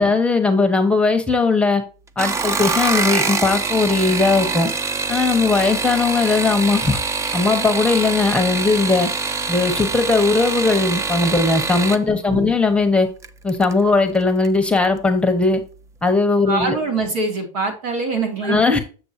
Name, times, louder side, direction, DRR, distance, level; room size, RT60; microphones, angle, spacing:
voice 1, 0.0-1.8 2.2-4.7 5.1-7.0 7.3-9.1 9.5-13.1 13.4-15.6 16.0-16.8 18.4-18.8, left 3 dB, 5° left, 6 dB, 0.9 m, -18 dB
sound 1, 2.1-12.0 13.2-13.7 14.1-14.6 14.8-14.9, right 4 dB, 15° right, 0.4 m, -24 dB
voice 2, 12.1-12.5 16.5-18.6, right 3 dB, 85° right, 4 dB, 2.7 m, -24 dB
7.0 x 6.9 x 2.7 m, 0.35 s
supercardioid pair, 140°, 18 cm